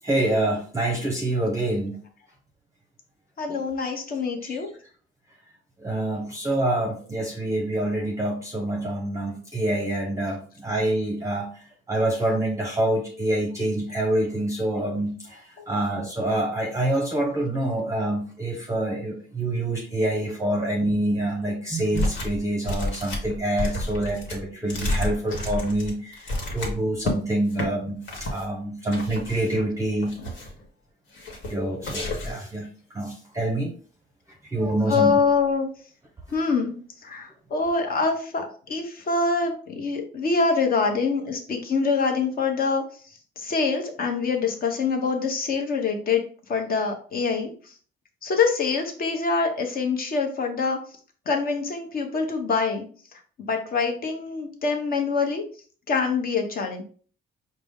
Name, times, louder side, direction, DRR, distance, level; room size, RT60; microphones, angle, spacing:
voice 1, 0.0-2.0 3.5-3.6 4.4-4.6 5.8-30.1 31.5-33.7 34.5-35.1, right 1 dB, 15° right, 1 dB, 0.7 m, -26 dB
voice 2, 3.4-4.7 15.6-15.7 34.6-35.7 36.3-36.7 37.0-42.9 43.4-46.2 46.5-47.5 48.2-50.8 51.3-52.9 53.4-55.4 55.9-56.8, left 4 dB, 50° left, 3 dB, 1.0 m, -25 dB
sound 1, 21.9-22.4 22.6-27.2 27.5-27.7 28.0-28.4 28.9-29.6 30.0-30.6 31.1-31.5 31.8-32.4, left 1 dB, 75° left, 1.2 m, -30 dB
4.9 x 2.1 x 3.6 m, 0.43 s
cardioid pair, 110°, 20 cm